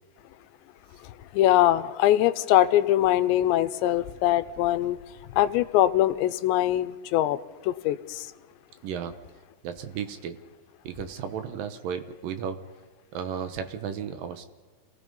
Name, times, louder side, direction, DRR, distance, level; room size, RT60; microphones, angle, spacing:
voice 1, 1.3-5.0 5.4-7.4 7.7-8.0, left 13 dB, 85° left, 13 dB, 3.0 m, -22 dB
voice 2, 8.8-9.1 9.6-10.4 10.8-12.6 13.1-14.4, right 7 dB, 70° right, 9 dB, 2.3 m, -34 dB
28.0 x 18.5 x 5.4 m, 1.3 s
omnidirectional pair, 5.1 m